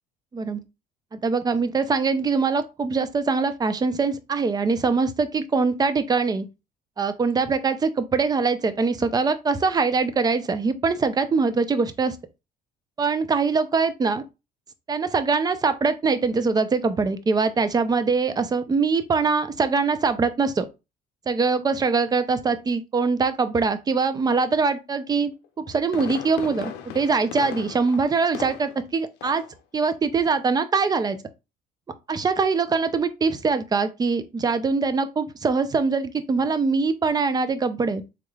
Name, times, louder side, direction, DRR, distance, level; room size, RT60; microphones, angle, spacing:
voice 1, 1.1-6.5 7.0-12.2 13.0-14.2 14.9-20.7 21.3-29.4 29.7-31.2 32.1-38.0, right 4 dB, 25° right, 0.4 m, -23 dB
Fireworks, 25.4-28.9 29.2-29.6 29.9-30.0, left 9 dB, 85° left, 0.5 m, -37 dB
3.6 x 3.1 x 2.2 m
cardioid pair, 110°, 17 cm